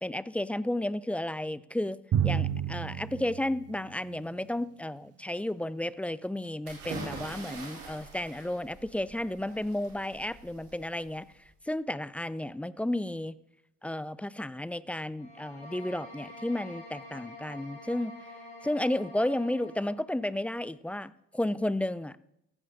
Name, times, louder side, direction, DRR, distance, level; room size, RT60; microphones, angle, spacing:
voice 1, 0.0-11.3 11.6-13.4 13.8-18.1 18.6-22.2, left 1 dB, 5° left, 18 dB, 0.4 m, -32 dB
Drum, 2.1-4.5, right 9 dB, 40° right, 1.3 m, -31 dB
sound 1, 6.6-11.5, right 3 dB, 80° right, 4.0 m, -44 dB
sound 2, 15.1-20.0, left 1 dB, 70° left, 4.3 m, -47 dB
14.5 x 11.0 x 3.7 m, 0.79 s
hypercardioid pair, 55°, 39 cm